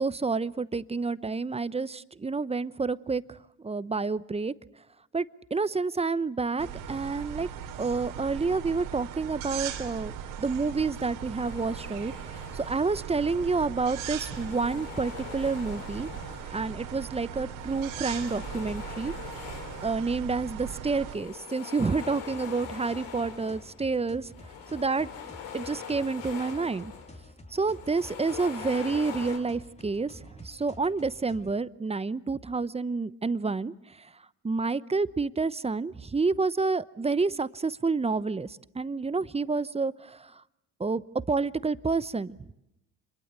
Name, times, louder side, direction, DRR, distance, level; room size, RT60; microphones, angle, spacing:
voice 1, 0.0-3.4 3.6-4.5 5.1-7.5 7.8-10.1 10.4-16.1 16.5-19.1 19.8-24.3 24.7-25.1 25.5-26.9 27.5-34.1 34.4-40.4 40.8-42.5, right 4 dB, 20° right, 16 dB, 0.9 m, -29 dB
sound 1, 6.6-21.2, right 8 dB, 85° right, 3.1 m, -39 dB
sound 2, 11.4-13.2 14.0-17.0 17.6-20.4 20.8-23.8 24.2-27.2 27.6-29.4, left 7 dB, 85° left, 3.8 m, -43 dB
sound 3, 12.4-31.6, left 1 dB, 20° left, 2.8 m, -52 dB
26.5 x 22.0 x 8.1 m, 0.85 s
supercardioid pair, 80°, 32 cm